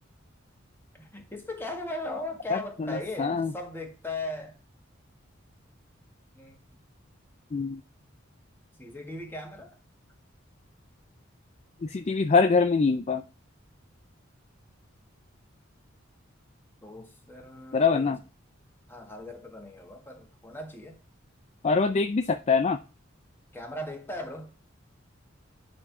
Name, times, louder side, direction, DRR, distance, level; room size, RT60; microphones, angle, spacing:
voice 1, 0.9-4.5 6.4-6.6 8.8-9.7 16.8-18.1 18.9-21.0 23.5-24.5, left 2 dB, 10° left, 1.8 m, -38 dB
voice 2, 2.5-3.5 7.5-7.8 11.8-13.2 17.7-18.2 21.6-22.8, left 4 dB, 35° left, 0.4 m, -24 dB
9.7 x 4.4 x 5.9 m
head